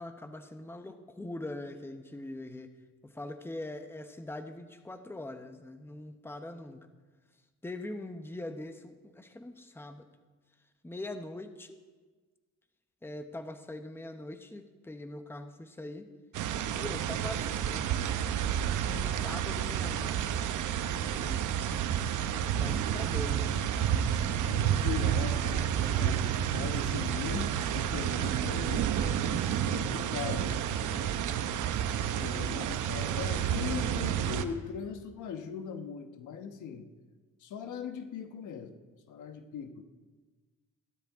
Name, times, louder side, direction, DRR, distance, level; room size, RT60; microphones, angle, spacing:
voice 1, 0.0-2.7 3.0-6.9 7.6-10.0 10.8-11.8 13.0-16.1 16.7-17.9 18.8-20.6 21.0-21.7 22.5-23.5 25.9-26.2 30.4-30.5, left 2 dB, 10° left, 8 dB, 0.9 m, -42 dB
sound 1, 16.3-34.4, right 9 dB, 80° right, 0.9 m, -30 dB
voice 2, 22.6-22.9 24.4-31.1 32.0-36.9 37.4-38.7 39.1-39.8, left 7 dB, 80° left, 7 dB, 1.2 m, -40 dB
15.5 x 12.5 x 3.6 m, 1.3 s
cardioid pair, 90°, 30 cm